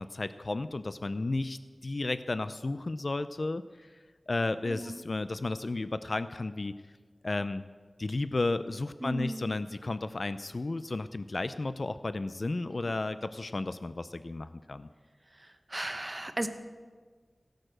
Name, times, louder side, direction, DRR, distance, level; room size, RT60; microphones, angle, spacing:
voice 1, 0.0-3.9 4.3-6.7 7.2-7.6 8.0-14.9, left 2 dB, 55° left, 12 dB, 0.4 m, -33 dB
voice 2, 4.6-5.0 9.0-9.5 15.3-16.5, right 1 dB, 30° right, 7 dB, 1.0 m, -36 dB
16.5 x 6.5 x 7.7 m, 1.5 s
wide cardioid pair, 65°, 0 cm